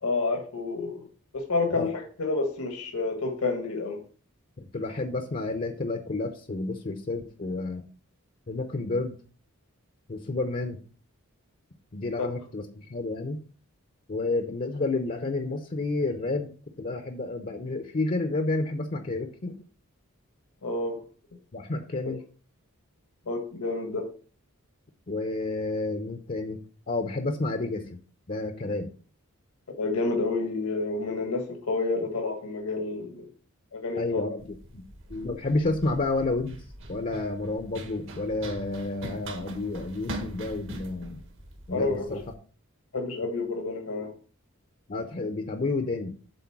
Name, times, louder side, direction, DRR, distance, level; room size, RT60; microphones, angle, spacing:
voice 1, 0.0-1.1 1.3-4.0 12.2-12.3 20.6-21.0 23.3-24.1 29.8-33.3 33.7-34.2 41.7-42.0 42.9-44.1, left 3 dB, 75° left, 3 dB, 1.4 m, -29 dB
voice 2, 4.6-7.8 8.5-9.2 10.1-10.8 11.9-13.4 14.1-16.5 16.8-19.5 21.5-22.2 25.1-26.6 26.9-28.0 28.3-28.9 34.0-34.8 35.1-41.2 41.7-42.2 44.9-46.1, left 2 dB, 40° left, 6 dB, 0.7 m, -30 dB
Run, 34.4-42.3, right 1 dB, 60° right, 1.5 m, -42 dB
7.8 x 4.0 x 5.9 m, 0.41 s
head